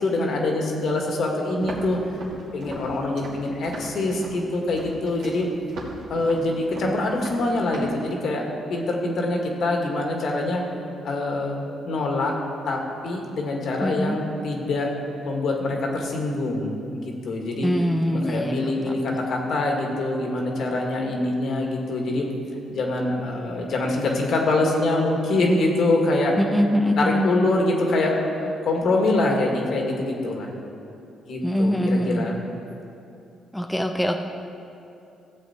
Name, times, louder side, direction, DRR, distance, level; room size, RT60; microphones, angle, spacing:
voice 1, 0.0-2.0 2.5-5.5 6.1-10.6 11.0-11.6 11.8-12.4 12.7-14.9 15.2-17.7 18.1-22.3 22.7-26.4 27.0-30.5 31.2-32.4, left 2 dB, 65° left, 1 dB, 1.8 m, -24 dB
Walk footsteps, 1.6-8.0, right 2 dB, 85° right, 2.1 m, -39 dB
voice 2, 13.8-14.2 17.6-19.1 26.4-27.3 31.4-32.3 33.5-34.2, equal, 5° left, 4 dB, 0.6 m, -23 dB
14.0 x 7.6 x 4.3 m, 2.7 s
cardioid pair, 90°, 0 cm